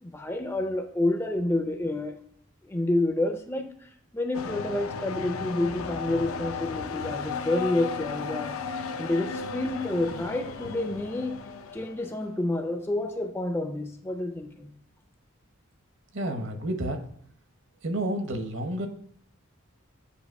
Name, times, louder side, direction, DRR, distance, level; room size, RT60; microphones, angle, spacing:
voice 1, 0.0-2.2 2.6-8.6 9.0-11.4 11.7-14.7, left 1 dB, 10° left, 6 dB, 0.4 m, -29 dB
sound 1, 4.3-12.2, left 5 dB, 85° left, 0.5 m, -35 dB
voice 2, 16.1-17.0 17.8-18.9, right 1 dB, 60° right, 6 dB, 0.9 m, -30 dB
8.2 x 2.8 x 5.3 m, 0.65 s
head